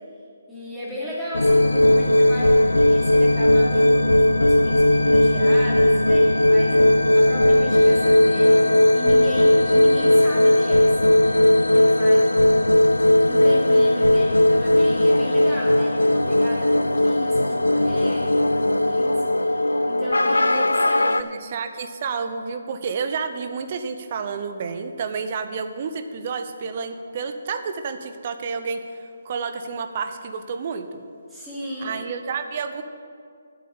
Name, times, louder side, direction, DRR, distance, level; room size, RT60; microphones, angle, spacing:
voice 1, 0.5-12.8 13.3-19.2 19.4-21.4 31.3-32.0, equal, 5° right, -9 dB, 3.1 m, -34 dB
sound 1, 1.3-21.2, left 1 dB, 85° left, 0.4 m, -17 dB
voice 2, 20.3-31.0 31.8-32.8, right 5 dB, 40° right, 8 dB, 0.8 m, -30 dB
8.3 x 8.3 x 8.5 m, 2.2 s
figure-of-eight pair, 145°, 0 cm